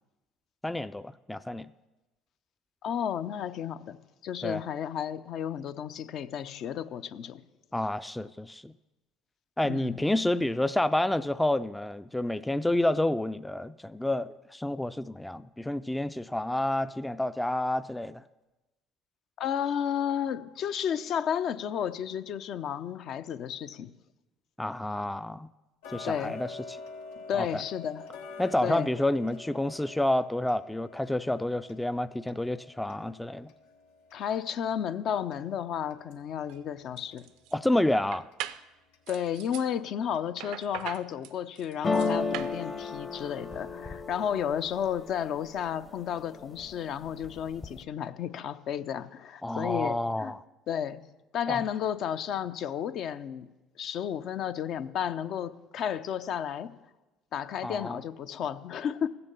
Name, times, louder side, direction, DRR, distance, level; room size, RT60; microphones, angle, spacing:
voice 1, 0.6-1.7 4.4-4.6 7.7-8.7 9.6-18.2 24.6-25.5 25.9-26.8 27.3-27.6 28.4-33.5 37.5-38.3 49.4-50.4 51.5-51.6 57.6-58.0, left 1 dB, 5° left, 0.3 m, -29 dB
voice 2, 2.8-4.0 4.2-7.4 9.7-10.0 19.4-23.9 26.0-26.4 27.3-28.1 28.6-28.9 34.1-37.3 39.1-50.3 50.7-51.0 51.3-53.5 53.8-56.8 57.3-59.1, left 9 dB, 60° left, 0.6 m, -32 dB
Tick-tock, 25.8-36.7 37.1-37.2 37.7-37.8 38.3-38.4 38.9-39.0 39.5-39.6 40.1-40.2 40.7-40.8, left 3 dB, 85° left, 1.2 m, -46 dB
sound 1, 36.4-36.6 37.0-37.5 38.1-38.7 39.1-39.7 40.4-42.6, right 13 dB, 75° right, 0.5 m, -40 dB
sound 2, 41.8-45.7 46.2-46.8 47.1-47.8, left 4 dB, 25° left, 0.8 m, -33 dB
15.0 x 6.9 x 6.9 m
supercardioid pair, 75°, 0 cm